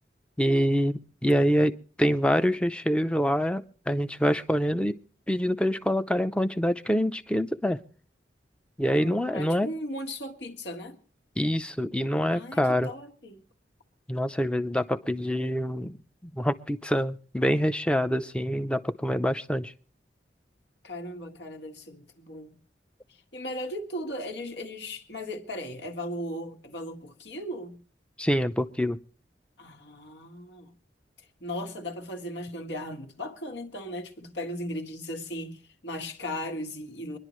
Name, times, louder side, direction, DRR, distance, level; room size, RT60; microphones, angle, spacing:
voice 1, 0.4-4.9 5.3-7.8 8.8-9.7 11.4-12.9 14.1-16.0 16.2-19.7 28.2-29.0, equal, 5° left, 0.5 m, -26 dB
voice 2, 8.9-11.0 12.3-13.5 20.8-22.6 23.1-27.8 29.6-30.7 31.2-37.2, left 1 dB, 75° left, 1.7 m, -37 dB
25.0 x 11.0 x 3.1 m
head